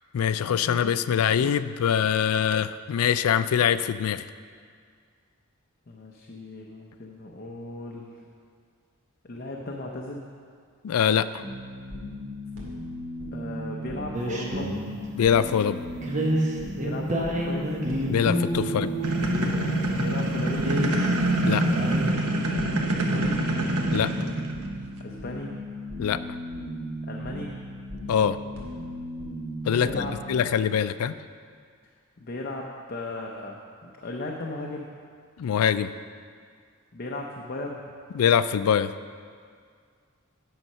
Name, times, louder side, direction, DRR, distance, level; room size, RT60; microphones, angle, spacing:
voice 1, 0.1-4.2 10.8-11.4 15.2-15.8 18.1-19.1 21.4-21.6 23.9-24.1 26.0-26.2 28.1-28.4 29.7-31.2 35.4-35.9 38.1-38.9, left 8 dB, 85° left, 14 dB, 0.4 m, -23 dB
voice 2, 5.9-8.1 9.2-10.2 13.3-14.7 16.8-17.7 20.0-21.1 22.9-23.4 25.0-25.5 27.0-27.5 29.7-30.1 32.2-34.9 36.9-37.8, left 2 dB, 45° left, -1 dB, 0.7 m, -36 dB
sound 1, 11.4-30.3, equal, 65° right, 2.1 m, -36 dB
sound 2, 14.1-15.1 16.0-20.0 20.5-22.1, equal, 35° right, 1.0 m, -29 dB
sound 3, 19.0-24.7, right 1 dB, 85° right, 0.9 m, -25 dB
9.0 x 6.5 x 5.5 m, 2.1 s
head